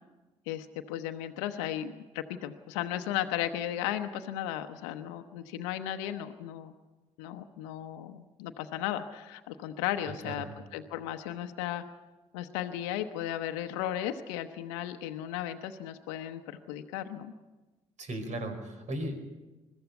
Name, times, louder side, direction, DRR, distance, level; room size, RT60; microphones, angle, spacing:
voice 1, 0.5-6.7 7.2-10.5 10.7-11.8 12.3-16.4 16.7-17.3, left 11 dB, 80° left, 7 dB, 0.9 m, -35 dB
voice 2, 10.0-10.5 18.0-19.2, right 1 dB, 55° right, 7 dB, 4.6 m, -36 dB
21.5 x 13.5 x 9.2 m, 1.2 s
hypercardioid pair, 50°, 15 cm